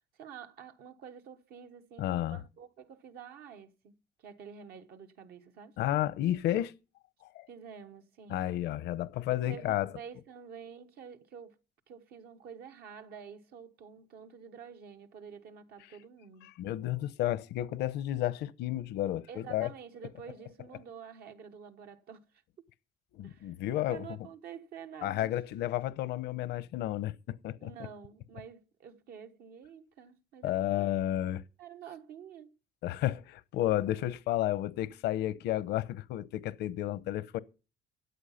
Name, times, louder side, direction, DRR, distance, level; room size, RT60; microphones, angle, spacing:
voice 1, 0.2-5.8 7.5-8.5 9.3-11.6 11.9-16.5 19.3-22.3 23.2-23.5 23.9-25.4 27.6-31.0 31.6-32.5, right 7 dB, 70° right, 1.3 m, -49 dB
voice 2, 2.0-2.4 5.8-6.7 7.3-7.5 8.3-9.9 16.4-19.7 23.1-24.0 25.0-27.7 30.4-31.4 32.8-37.4, left 13 dB, 80° left, 0.8 m, -32 dB
13.5 x 8.2 x 5.7 m
cardioid pair, 110°, 17 cm